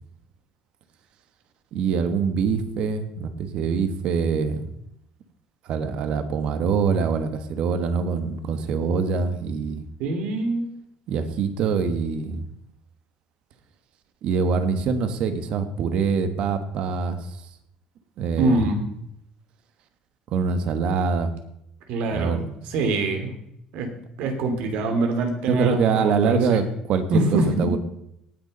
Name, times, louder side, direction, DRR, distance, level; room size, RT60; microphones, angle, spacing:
voice 1, 1.7-4.7 5.6-9.8 11.1-12.4 14.2-17.4 18.2-18.6 20.3-21.3 22.1-22.6 25.5-27.8, right 5 dB, 50° right, 9 dB, 1.4 m, -24 dB
voice 2, 10.0-10.7 18.4-18.8 21.9-22.4 22.7-23.3 23.7-23.9 24.2-26.6 27.1-27.7, right 2 dB, 70° right, 5 dB, 2.8 m, -24 dB
18.0 x 6.8 x 5.4 m, 0.78 s
cardioid pair, 160°, 2 cm